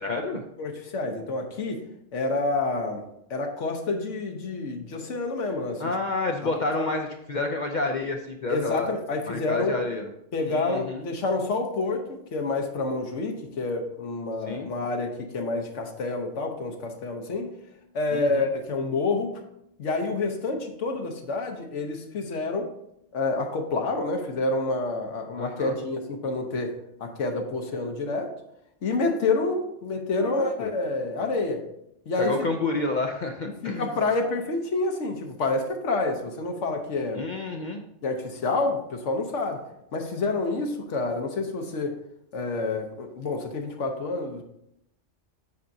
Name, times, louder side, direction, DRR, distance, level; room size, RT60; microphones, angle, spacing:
voice 1, 0.0-0.4 5.8-8.9 9.3-10.1 10.5-11.0 14.5-14.7 18.1-18.5 25.4-25.8 30.2-30.7 32.2-33.9 37.1-37.8, left 3 dB, 55° left, 3 dB, 0.5 m, -29 dB
voice 2, 0.6-1.8 2.1-3.0 3.3-5.8 6.4-6.9 8.5-9.7 10.3-17.5 17.9-19.4 19.8-22.7 23.1-26.7 27.0-28.3 28.8-31.6 32.1-32.3 33.6-37.2 38.0-39.6 39.9-41.9 42.3-44.4, left 3 dB, 75° left, 4 dB, 1.2 m, -28 dB
8.3 x 5.7 x 2.7 m, 0.79 s
omnidirectional pair, 1.3 m